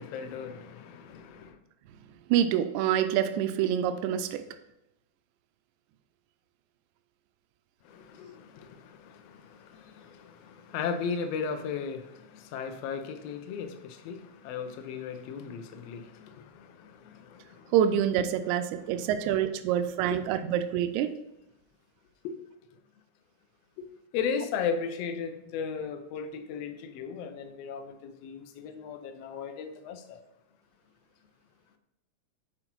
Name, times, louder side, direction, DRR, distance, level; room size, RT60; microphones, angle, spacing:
voice 1, 0.0-1.6 7.9-17.7 19.0-19.1 20.1-20.3 22.2-22.4 23.8-23.9 24.1-30.2, left 6 dB, 70° left, 1.7 m, -36 dB
voice 2, 2.3-4.4 17.7-21.2, right 10 dB, 85° right, 2.0 m, -26 dB
9.8 x 4.7 x 4.6 m
omnidirectional pair, 3.4 m